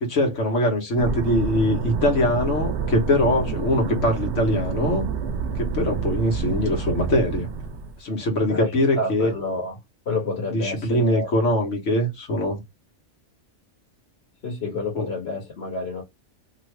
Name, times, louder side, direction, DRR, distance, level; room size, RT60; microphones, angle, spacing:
voice 1, 0.0-5.1 5.6-7.5 8.0-9.3 10.5-12.6 14.9-15.1, left 1 dB, 75° left, 1.4 m, -22 dB
sound 1, 1.0-8.0, right 5 dB, 70° right, 0.9 m, -28 dB
voice 2, 8.5-9.8 10.0-11.3 14.4-16.0, left 3 dB, 60° left, 1.3 m, -29 dB
3.0 x 2.5 x 3.1 m
omnidirectional pair, 1.3 m